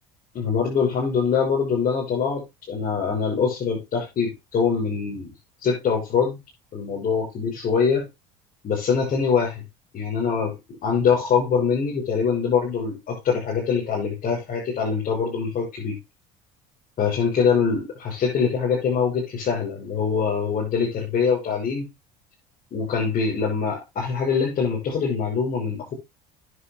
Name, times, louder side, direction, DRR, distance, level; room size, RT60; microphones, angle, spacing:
voice 1, 0.3-5.3 5.6-6.4 6.7-8.1 8.6-9.6 9.9-10.5 10.8-16.0 17.0-21.9 22.7-25.9, left 6 dB, 50° left, -4 dB, 6.2 m, -23 dB
12.5 x 9.8 x 2.2 m, 0.21 s
supercardioid pair, 95°, 18 cm